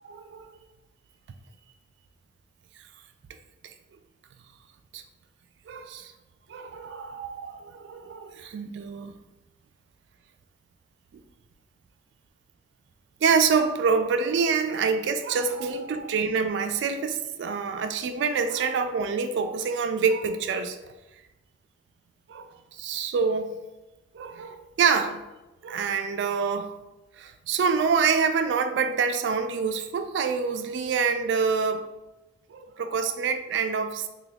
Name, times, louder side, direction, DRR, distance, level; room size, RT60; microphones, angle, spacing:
voice 1, 5.7-6.1 6.5-9.1 11.1-11.2 13.2-20.8 22.3-23.5 24.1-25.2 25.6-26.7 27.2-31.9 32.5-34.1, right 5 dB, 70° right, 7 dB, 0.3 m, -26 dB
3.4 x 2.2 x 3.4 m, 1.0 s
head